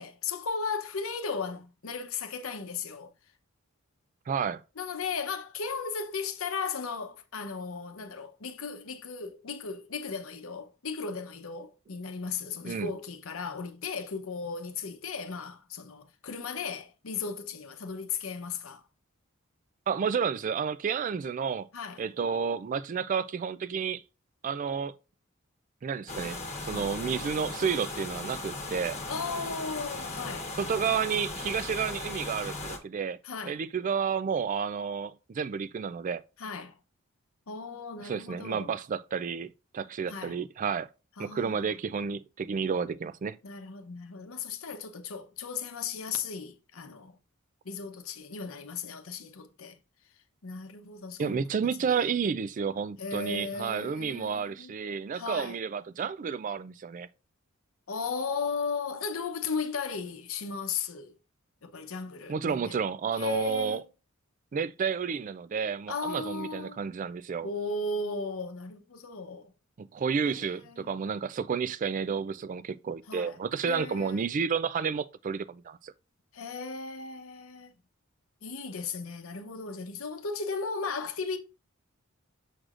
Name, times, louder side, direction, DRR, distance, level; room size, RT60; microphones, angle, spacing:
voice 1, 0.0-3.1 4.8-18.8 21.7-22.0 26.7-27.0 29.1-30.5 33.2-33.6 36.4-36.8 37.5-38.7 40.1-40.4 41.2-41.7 43.4-47.2 47.6-49.8 50.4-51.9 53.0-54.8 55.1-55.6 57.9-61.2 61.6-62.8 63.2-63.9 65.9-66.8 67.4-69.5 70.3-71.0 73.1-73.4 73.6-74.3 76.3-77.7 78.4-81.4, left 5 dB, 75° left, 0.8 m, -36 dB
voice 2, 4.3-4.6 12.6-12.9 19.9-21.7 22.0-24.0 24.4-24.9 25.8-29.0 30.6-33.2 33.4-36.2 38.0-40.9 41.2-43.4 51.2-57.1 62.3-63.8 64.5-67.5 69.8-75.9, right 6 dB, 40° right, 0.3 m, -31 dB
sound 1, 26.1-32.8, left 2 dB, 35° left, 1.1 m, -37 dB
6.5 x 6.2 x 2.5 m
head